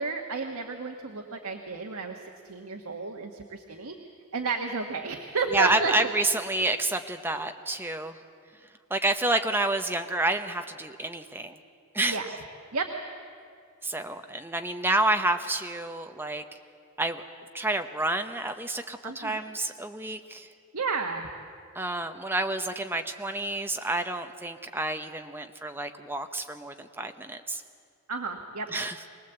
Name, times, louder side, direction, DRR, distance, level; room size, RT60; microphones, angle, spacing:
voice 1, 0.0-4.0 4.3-5.9 12.1-12.3 12.7-12.9 19.0-19.4 20.7-21.3 28.1-28.7, right 4 dB, 80° right, 3 dB, 1.3 m, -32 dB
voice 2, 5.5-8.2 8.9-11.6 11.9-12.2 13.8-16.4 17.0-17.2 17.5-20.5 21.7-27.6 28.7-29.0, right 2 dB, 10° right, 6 dB, 0.9 m, -29 dB
23.5 x 19.0 x 8.0 m, 2.3 s
head